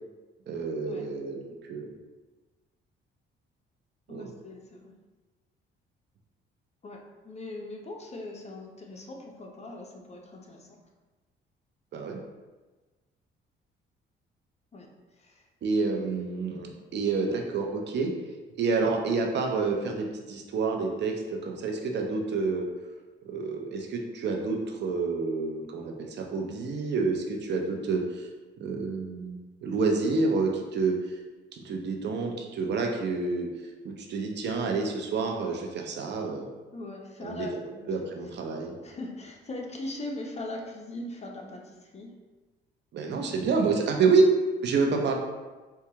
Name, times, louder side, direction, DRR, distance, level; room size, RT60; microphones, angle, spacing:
voice 1, 0.5-1.9 4.1-4.3 11.9-12.2 15.6-18.1 18.5-22.7 23.2-28.3 28.6-31.0 31.5-33.5 33.8-36.5 37.2-38.7 42.9-44.2 44.6-45.1, right 4 dB, 60° right, 2 dB, 0.6 m, -28 dB
voice 2, 4.1-4.9 6.8-7.0 7.2-10.8 14.7-15.5 36.7-38.3 38.8-42.1 43.9-44.0, left 2 dB, 35° left, 1 dB, 0.6 m, -40 dB
4.5 x 2.3 x 2.8 m, 1.2 s
cardioid pair, 90°, 20 cm